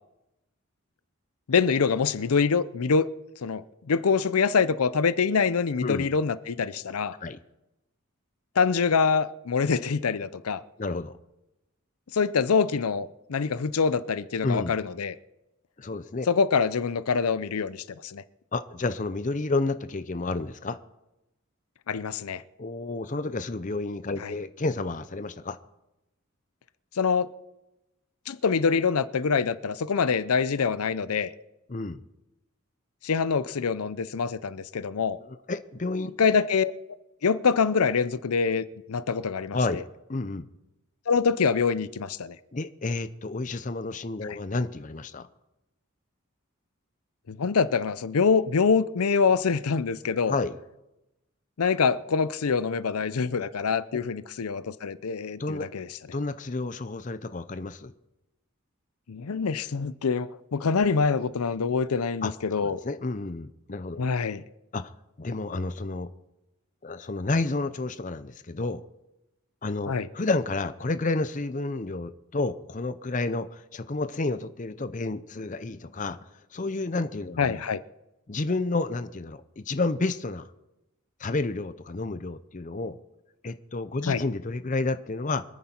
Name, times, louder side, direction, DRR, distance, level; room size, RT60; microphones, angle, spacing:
voice 1, 1.5-3.1 3.4-7.2 8.6-10.6 12.1-15.1 16.3-18.2 21.9-22.4 24.2-24.3 26.9-27.3 28.3-31.3 33.0-35.2 36.2-36.7 37.2-39.8 41.1-42.4 44.2-44.4 47.3-50.3 51.6-55.9 59.1-62.8 64.0-64.4 69.9-70.1 77.4-77.8 84.1-84.2, left 5 dB, 80° left, 0.6 m, -25 dB
voice 2, 5.8-6.1 7.2-7.4 10.8-11.1 14.4-14.8 15.8-16.3 18.5-20.8 22.6-25.6 31.7-32.0 35.2-36.1 39.5-39.8 40.1-40.5 42.5-45.3 50.3-50.5 53.9-54.0 55.4-55.7 56.1-57.9 62.2-64.0 64.7-64.9 65.2-66.1 66.8-68.8 69.6-76.2 76.5-77.6 78.3-80.5 81.2-83.0 83.4-85.4, left 3 dB, 35° left, 0.6 m, -30 dB
25.0 x 9.4 x 4.4 m
head